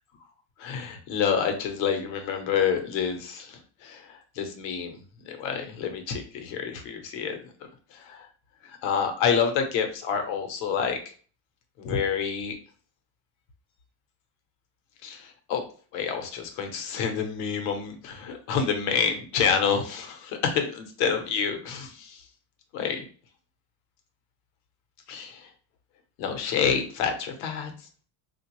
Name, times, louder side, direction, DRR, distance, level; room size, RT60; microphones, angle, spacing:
voice 1, 0.6-4.0 4.4-5.0 5.3-7.4 8.1-8.2 8.8-11.0 11.8-12.6 15.0-15.6 15.9-22.2 22.7-23.0 25.1-25.4 26.2-27.7, left 7 dB, 75° left, 5 dB, 0.9 m, -28 dB
3.6 x 2.4 x 3.0 m, 0.42 s
cardioid pair, 125°, 45 cm